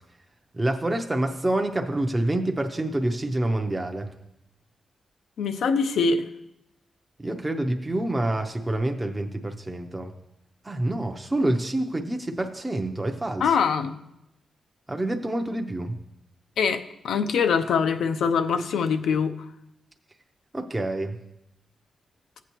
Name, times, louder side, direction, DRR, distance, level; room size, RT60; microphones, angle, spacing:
voice 1, 0.5-4.1 7.2-10.1 10.6-13.5 14.9-16.0 20.5-21.2, right 1 dB, 15° right, 4 dB, 0.6 m, -27 dB
voice 2, 5.4-6.2 13.4-13.9 16.6-19.3, left 5 dB, 90° left, 8 dB, 0.6 m, -23 dB
15.0 x 8.2 x 3.0 m, 0.85 s
wide cardioid pair, 135°, 0 cm